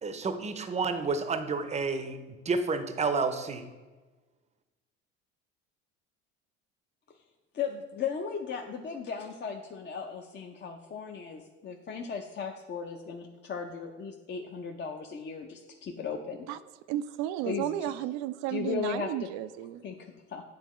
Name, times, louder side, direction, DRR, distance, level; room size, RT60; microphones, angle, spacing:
voice 1, 0.0-2.2 2.5-3.6, right 4 dB, 20° right, 9 dB, 0.6 m, -30 dB
voice 2, 7.5-16.5 17.4-17.9 18.5-19.3 19.8-20.4, left 6 dB, 30° left, 3 dB, 0.6 m, -36 dB
voice 3, 16.9-19.8, right 13 dB, 70° right, 14 dB, 0.5 m, -33 dB
9.3 x 3.5 x 3.1 m, 1.3 s
hypercardioid pair, 70°, 35 cm